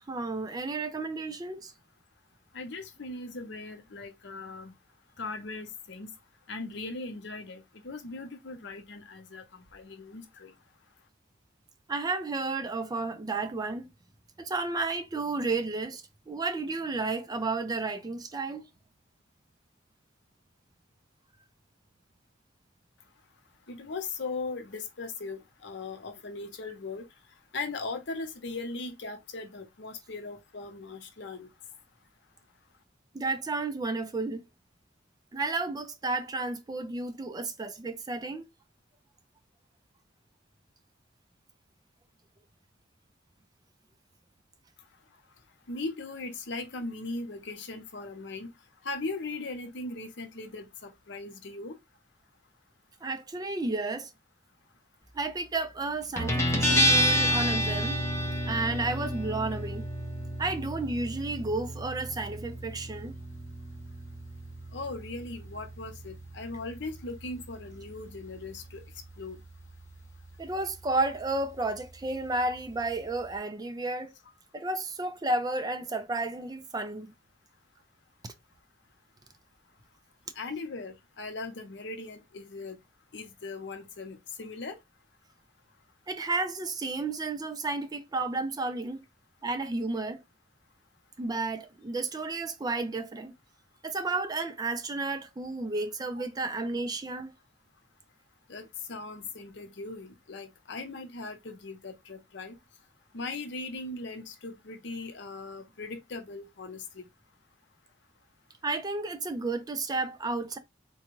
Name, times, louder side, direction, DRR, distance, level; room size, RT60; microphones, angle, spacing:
voice 1, 0.1-1.7 11.9-13.9 14.4-18.7 33.1-34.4 35.3-38.4 53.0-54.1 55.1-58.0 58.5-59.9 60.4-63.1 70.4-74.1 74.5-77.1 78.2-78.3 86.1-89.0 89.4-90.2 91.2-93.3 93.8-97.3 108.6-110.6, right 3 dB, 20° right, 0.4 m, -32 dB
voice 2, 2.5-4.7 5.2-6.1 6.5-10.5 23.7-27.0 27.5-31.5 45.7-48.5 48.8-51.8 64.7-68.8 69.2-69.4 80.3-82.8 83.1-84.8 98.5-102.6 103.1-107.1, left 3 dB, 65° left, 0.7 m, -39 dB
Guitar, 56.2-73.4, equal, 15° left, 0.7 m, -32 dB
3.8 x 2.2 x 3.0 m
head